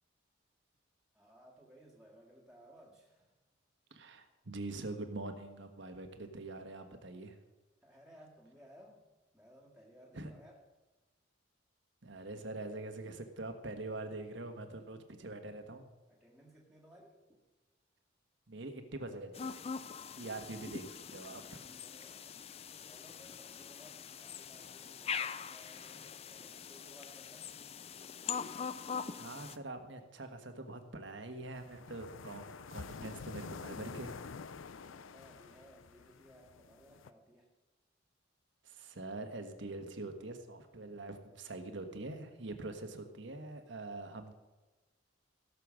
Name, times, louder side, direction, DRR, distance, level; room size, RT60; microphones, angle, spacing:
voice 1, 1.1-3.4 7.8-9.1 9.3-10.6 16.1-17.4 21.1-22.4 22.8-27.6 34.7-37.5, equal, 5° right, -4 dB, 1.9 m, -60 dB
voice 2, 3.9-7.4 10.1-10.3 12.0-15.9 18.5-19.6 20.1-21.6 29.2-34.3 38.6-44.3, right 2 dB, 65° right, 6 dB, 1.4 m, -44 dB
sound 1, 19.3-29.6, left 6 dB, 30° left, 0.4 m, -43 dB
sound 2, 31.5-37.1, left 5 dB, 80° left, 0.5 m, -48 dB
16.5 x 6.8 x 6.3 m, 1.2 s
head